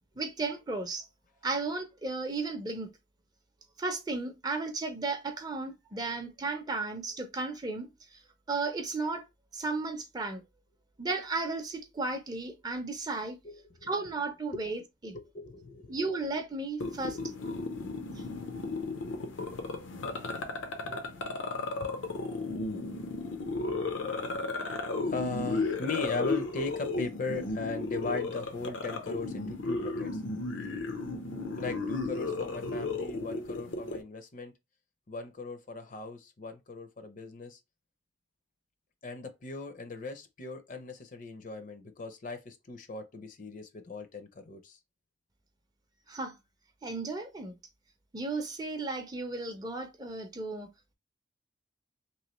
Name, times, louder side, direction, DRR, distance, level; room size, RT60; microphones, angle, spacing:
voice 1, 0.2-1.1 1.4-2.9 3.8-7.9 8.5-9.2 9.5-10.4 11.0-13.4 13.8-15.2 15.9-17.2 46.1-46.3 46.8-47.5 48.1-50.7, right 3 dB, 20° right, 0.5 m, -34 dB
voice 2, 13.4-13.9 14.5-14.6 15.1-16.0 17.1-17.5 20.7-21.0 21.8-21.9 25.0-30.2 31.5-34.5 35.1-37.6 39.0-44.8, left 3 dB, 40° left, 0.5 m, -38 dB
sound 1, 16.8-34.0, left 3 dB, 85° left, 0.6 m, -34 dB
3.0 x 2.8 x 2.9 m
head